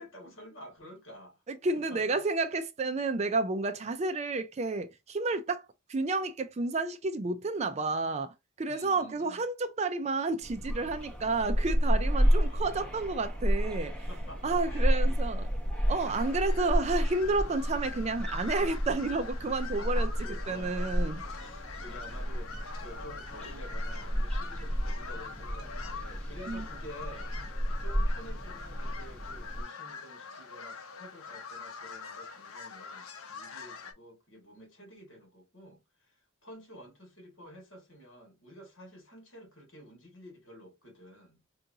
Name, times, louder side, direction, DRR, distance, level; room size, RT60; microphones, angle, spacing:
voice 1, 0.0-1.4 1.7-2.2 8.7-9.4 12.2-12.9 13.9-15.2 19.6-27.3 27.8-41.4, equal, 60° left, 1.9 m, -50 dB
voice 2, 1.5-5.6 5.9-14.0 14.4-15.4 15.9-20.1 20.5-21.2 26.5-26.7, right 3 dB, 30° right, 0.4 m, -31 dB
sound 1, 10.4-29.6, equal, 5° left, 0.8 m, -31 dB
sound 2, 16.0-33.9, left 5 dB, 80° left, 0.8 m, -45 dB
4.6 x 2.6 x 2.7 m
head